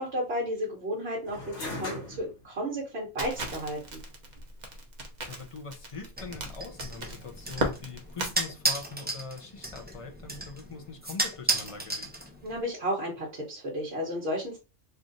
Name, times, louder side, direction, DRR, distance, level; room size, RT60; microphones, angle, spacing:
voice 1, 0.0-4.0 12.4-14.6, equal, 60° right, 1.3 m, -33 dB
sound 1, 1.2-10.4, left 2 dB, 75° left, 1.4 m, -46 dB
Crackle, 3.2-8.3, right 1 dB, 45° right, 0.9 m, -36 dB
voice 2, 5.3-12.1, left 4 dB, 35° left, 0.6 m, -42 dB
sound 2, 6.2-12.6, right 2 dB, 10° right, 0.5 m, -34 dB
3.2 x 2.5 x 3.9 m
omnidirectional pair, 1.2 m